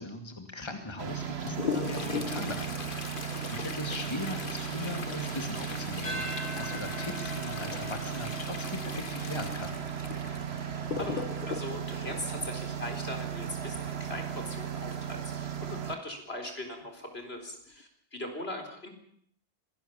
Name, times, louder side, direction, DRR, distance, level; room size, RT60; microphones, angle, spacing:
voice 1, 0.0-9.8, left 2 dB, 25° left, 5 dB, 2.4 m, -39 dB
sound 1, 1.0-16.0, right 9 dB, 75° right, 1.6 m, -36 dB
Toilet flush, 1.1-13.0 14.9-15.0 15.3-15.4 16.2-16.3 17.0-17.2 17.7-17.8, left 5 dB, 50° left, 1.5 m, -39 dB
sound 2, 6.0-14.5, left 2 dB, 45° right, 5.9 m, -45 dB
voice 2, 10.5-18.9, left 1 dB, 70° left, 5 dB, 4.4 m, -40 dB
25.5 x 18.5 x 7.2 m, 0.63 s
omnidirectional pair, 1.1 m